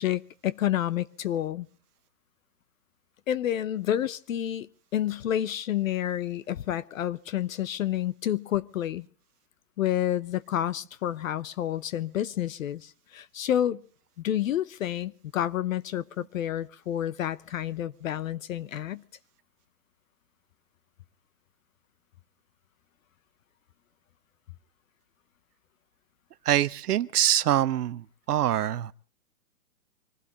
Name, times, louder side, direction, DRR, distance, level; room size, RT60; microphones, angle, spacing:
voice 1, 0.0-1.7 3.3-9.1 9.8-13.8 14.2-19.0, left 11 dB, 60° left, 0.7 m, -29 dB
voice 2, 26.5-28.9, right 12 dB, 75° right, 0.8 m, -25 dB
25.5 x 16.0 x 3.0 m
hypercardioid pair, 150°, 46 cm